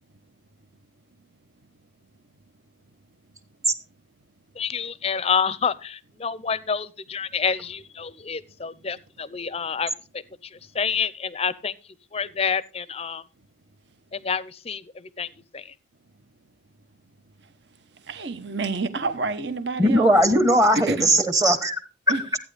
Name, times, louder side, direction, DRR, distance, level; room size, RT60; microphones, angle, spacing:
voice 1, 4.6-9.9 10.7-11.7 12.1-13.2 14.1-15.3 15.5-15.6, left 6 dB, 30° left, 0.5 m, -28 dB
voice 2, 18.1-20.0 20.7-21.2 22.1-22.2, right 3 dB, 60° right, 1.0 m, -28 dB
voice 3, 19.8-21.8, right 1 dB, 15° right, 1.0 m, -19 dB
14.0 x 9.2 x 3.4 m
head